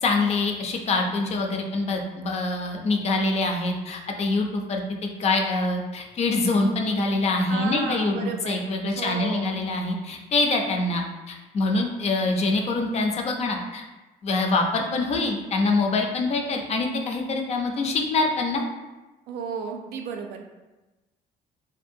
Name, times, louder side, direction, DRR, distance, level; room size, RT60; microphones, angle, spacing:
voice 1, 0.0-4.8 5.2-13.8 14.2-18.6, left 3 dB, 40° left, 2 dB, 0.4 m, -25 dB
voice 2, 7.5-8.6 8.9-9.5 19.3-20.5, right 6 dB, 70° right, 3 dB, 0.4 m, -33 dB
2.6 x 2.2 x 2.6 m, 1.1 s
cardioid pair, 110°, 17 cm